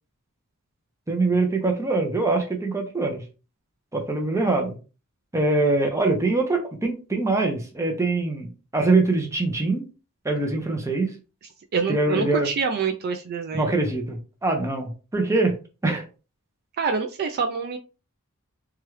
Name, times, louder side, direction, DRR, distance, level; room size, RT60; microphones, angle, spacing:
voice 1, 1.1-3.2 3.9-4.7 5.3-9.9 10.2-11.1 11.9-12.5 13.5-15.5 15.8-16.0, right 3 dB, 15° right, 3 dB, 0.6 m, -23 dB
voice 2, 11.7-13.8 16.8-17.8, right 5 dB, 45° right, 6 dB, 0.3 m, -26 dB
3.0 x 2.3 x 3.0 m, 0.33 s
head